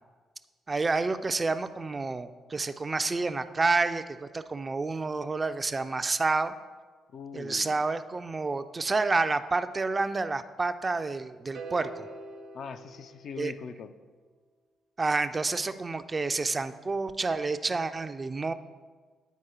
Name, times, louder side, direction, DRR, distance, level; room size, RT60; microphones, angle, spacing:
voice 1, 0.7-6.5 7.3-12.1 13.4-13.5 15.0-18.5, right 3 dB, 30° right, 11 dB, 0.3 m, -29 dB
voice 2, 7.1-7.9 12.5-13.9, left 6 dB, 55° left, 9 dB, 0.3 m, -41 dB
sound 1, 11.5-13.9, right 3 dB, 60° right, 0.7 m, -44 dB
9.2 x 4.6 x 2.9 m, 1.4 s
figure-of-eight pair, 40°, 0 cm